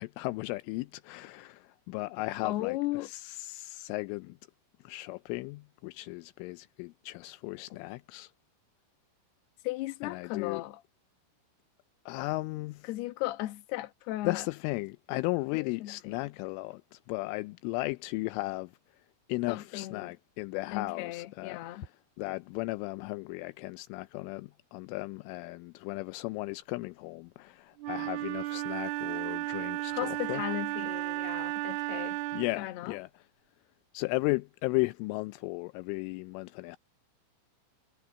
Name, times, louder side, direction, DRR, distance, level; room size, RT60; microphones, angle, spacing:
voice 1, 0.0-2.8 3.0-4.4 4.8-8.3 10.0-10.6 12.1-12.9 14.2-18.7 19.3-21.8 22.2-30.4 32.3-33.1 33.9-36.8, left 23 dB, 85° left, 3.0 m, -35 dB
voice 2, 2.4-3.1 9.6-10.8 12.8-14.5 15.5-16.3 19.5-20.1 20.7-21.9 29.9-32.2 32.6-32.9, left 16 dB, 65° left, 2.9 m, -36 dB
Wind instrument woodwind instrument, 27.8-32.6, right 18 dB, 90° right, 2.2 m, -34 dB
omnidirectional pair, 5.7 m